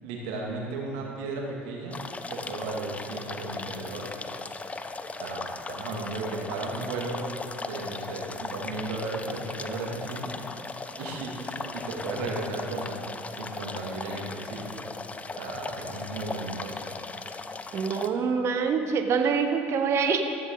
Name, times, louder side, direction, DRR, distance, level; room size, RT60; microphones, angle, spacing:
voice 1, 0.0-2.0 2.3-4.1 5.1-7.2 7.5-10.3 11.0-13.0 13.3-14.7 15.3-16.8, right 3 dB, 65° right, -1 dB, 2.6 m, -35 dB
sound 1, 1.9-18.1, left 3 dB, 20° left, 0.9 m, -38 dB
voice 2, 17.7-20.2, right 6 dB, 45° right, 5 dB, 1.2 m, -25 dB
15.0 x 14.0 x 4.0 m, 2.5 s
hypercardioid pair, 65°, 6 cm